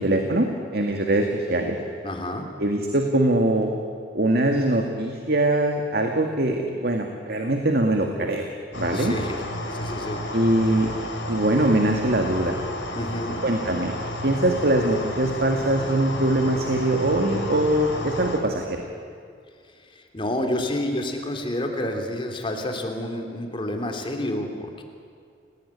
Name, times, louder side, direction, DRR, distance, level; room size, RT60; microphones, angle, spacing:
voice 1, 0.0-1.8 2.6-3.7 4.1-8.5 8.8-9.1 10.3-10.9 11.3-12.6 13.4-13.9 14.2-18.8, right 1 dB, 55° right, 3 dB, 2.0 m, -22 dB
voice 2, 2.0-2.5 8.9-9.4 9.7-10.2 12.9-13.4 19.9-24.8, left 1 dB, 30° left, 4 dB, 3.1 m, -29 dB
sound 1, 8.7-18.4, left 1 dB, 80° left, 5.4 m, -32 dB
29.0 x 18.5 x 9.9 m, 2.3 s
head